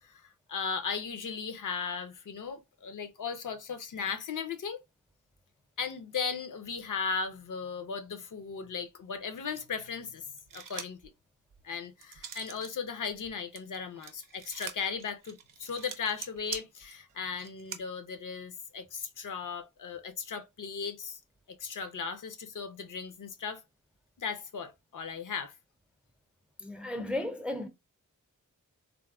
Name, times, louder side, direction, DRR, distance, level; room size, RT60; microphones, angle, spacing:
voice 1, 0.0-4.8 5.8-10.3 10.5-11.1 11.6-21.2 21.6-23.6 24.2-25.5, left 6 dB, 75° left, 0.5 m, -37 dB
sound 1, 10.4-11.1 11.5-12.7 13.1-17.8, right 7 dB, 85° right, 0.5 m, -44 dB
voice 2, 26.6-27.7, left 1 dB, 5° right, 0.3 m, -34 dB
3.5 x 2.0 x 2.2 m
wide cardioid pair, 100°, 31 cm